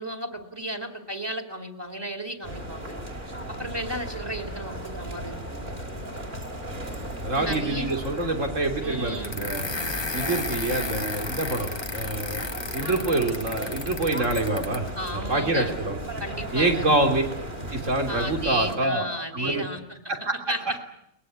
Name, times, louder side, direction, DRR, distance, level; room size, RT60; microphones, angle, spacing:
voice 1, 0.0-2.8 3.5-5.7 7.3-7.9 8.8-9.4 15.0-15.8 16.2-16.9 18.1-20.1 20.5-20.8, equal, 20° right, 6 dB, 2.6 m, -34 dB
sound 1, 2.4-18.8, right 1 dB, 40° right, 3.5 m, -36 dB
voice 2, 7.2-9.6 10.1-12.4 12.7-16.0 16.5-17.2 17.7-19.1 19.3-19.6 20.1-20.4, right 2 dB, 85° right, 4 dB, 3.9 m, -26 dB
sound 2, 9.2-14.9, left 3 dB, 25° left, 1.0 m, -33 dB
22.5 x 20.5 x 9.6 m, 0.74 s
omnidirectional pair, 1.3 m